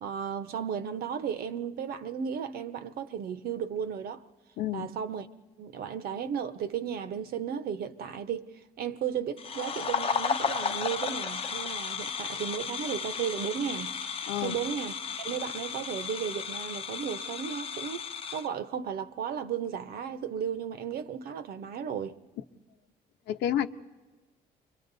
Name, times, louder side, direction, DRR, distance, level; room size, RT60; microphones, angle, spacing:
voice 1, 0.0-4.2 4.7-5.3 5.6-8.5 8.8-13.9 14.4-18.0 18.3-22.2, right 8 dB, 65° right, 1.2 m, -34 dB
voice 2, 4.6-4.9 14.3-14.6 23.3-23.7, left 11 dB, 80° left, 1.1 m, -29 dB
sound 1, 9.4-18.5, left 6 dB, 35° left, 0.9 m, -34 dB
29.5 x 24.0 x 4.1 m
cardioid pair, 110°, 17 cm